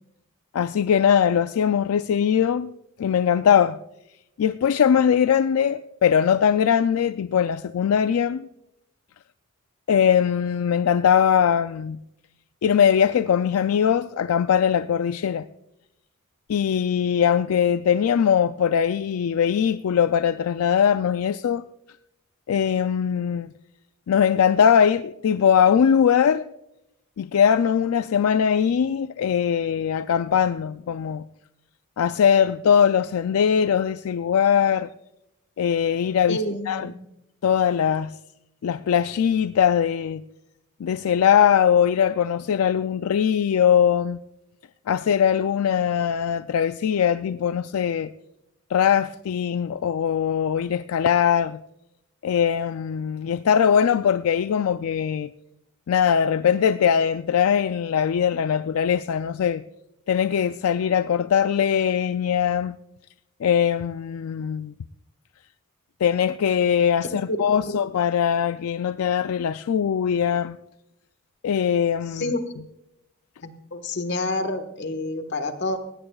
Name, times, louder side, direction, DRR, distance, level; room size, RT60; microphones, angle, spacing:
voice 1, 0.5-2.7 3.0-3.8 4.4-8.5 9.9-12.0 12.6-15.4 16.5-21.6 22.5-23.5 24.1-26.4 27.2-31.2 32.0-34.9 35.6-36.4 36.7-36.9 37.4-38.1 38.6-40.2 40.8-44.2 44.9-48.1 48.7-51.6 52.2-55.3 55.9-59.6 60.1-62.8 63.4-64.7 66.0-70.6 71.4-72.2, left 8 dB, 80° left, 0.4 m, -21 dB
voice 2, 36.3-36.9 67.1-67.8 72.1-72.4 73.4-75.8, left 2 dB, 55° left, 1.4 m, -29 dB
18.0 x 16.5 x 2.3 m
head